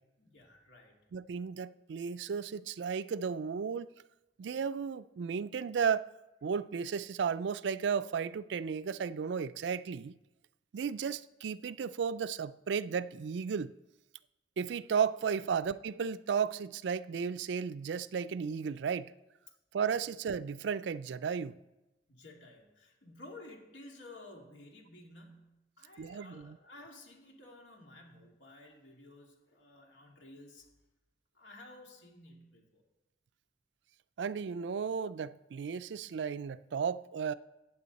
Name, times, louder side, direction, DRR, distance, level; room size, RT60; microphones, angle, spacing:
voice 1, 0.2-1.0 22.1-30.7 31.3-32.8, left 2 dB, 85° left, 2.6 m, -53 dB
voice 2, 1.1-3.9 4.4-6.1 6.4-10.2 10.7-13.7 14.6-19.1 19.7-21.6 26.0-26.6 34.2-37.3, right 6 dB, 75° right, 0.4 m, -34 dB
14.5 x 9.0 x 4.1 m
head